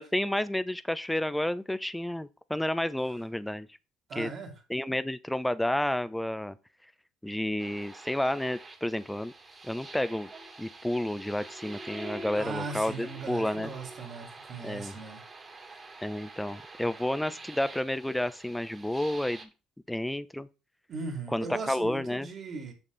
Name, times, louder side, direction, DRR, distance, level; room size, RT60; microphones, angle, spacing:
voice 1, 0.0-3.7 4.2-4.3 4.7-6.6 7.2-9.3 9.6-10.3 10.6-13.7 14.6-14.9 16.0-19.5 19.9-20.5 21.3-22.3, left 1 dB, 5° left, 0.6 m, -31 dB
voice 2, 4.1-4.5 12.0-15.2 15.6-15.8 20.9-22.7, right 4 dB, 45° right, 2.8 m, -39 dB
sound 1, 7.6-19.4, right 2 dB, 25° right, 2.1 m, -46 dB
7.3 x 6.5 x 4.0 m
supercardioid pair, 95°, 0 cm